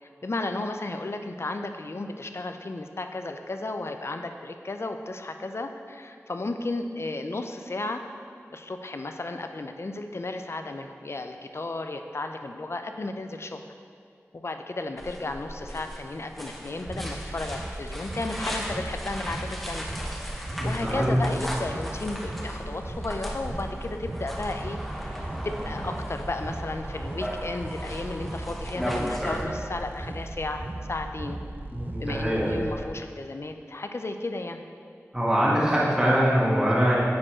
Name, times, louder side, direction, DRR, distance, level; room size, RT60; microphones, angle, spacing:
voice 1, 0.0-8.0 8.5-13.7 14.3-19.8 20.6-31.4 32.0-34.6, left 2 dB, 55° left, 6 dB, 0.5 m, -34 dB
sound 1, 15.0-29.4, equal, 5° left, 0.9 m, -36 dB
sound 2, 16.9-32.9, right 1 dB, 35° right, 0.5 m, -37 dB
voice 2, 20.6-21.2 31.7-32.5 35.1-36.9, equal, 15° right, -7 dB, 1.6 m, -23 dB
9.3 x 4.4 x 4.4 m, 2.3 s
wide cardioid pair, 60°, 5 cm